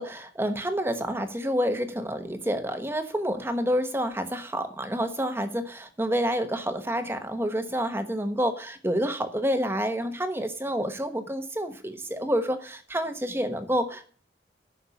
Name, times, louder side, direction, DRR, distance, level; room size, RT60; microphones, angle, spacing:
voice 1, 0.0-14.2, equal, 15° right, 8 dB, 1.1 m, -28 dB
9.9 x 6.5 x 8.2 m, 0.43 s
head